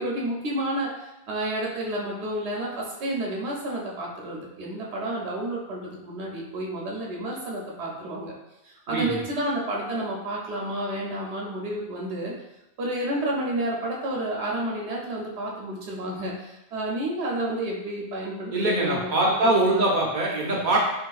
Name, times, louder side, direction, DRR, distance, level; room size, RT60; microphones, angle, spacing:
voice 1, 0.0-8.3 8.6-12.3 12.8-19.9, right 1 dB, 85° right, -2 dB, 1.0 m, -30 dB
voice 2, 8.9-9.3 18.5-20.8, right 2 dB, 50° right, -2 dB, 0.7 m, -23 dB
3.7 x 2.6 x 2.3 m, 0.92 s
omnidirectional pair, 1.1 m